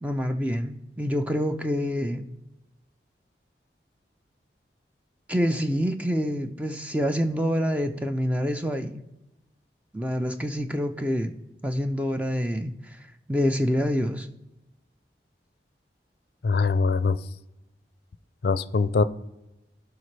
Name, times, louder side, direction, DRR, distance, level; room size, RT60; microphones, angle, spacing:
voice 1, 0.0-2.3 5.3-9.0 9.9-11.3 11.6-14.3, equal, 10° right, 0.4 m, -27 dB
voice 2, 16.4-17.2 18.4-19.0, left 4 dB, 65° left, 0.4 m, -22 dB
15.0 x 5.8 x 3.2 m
head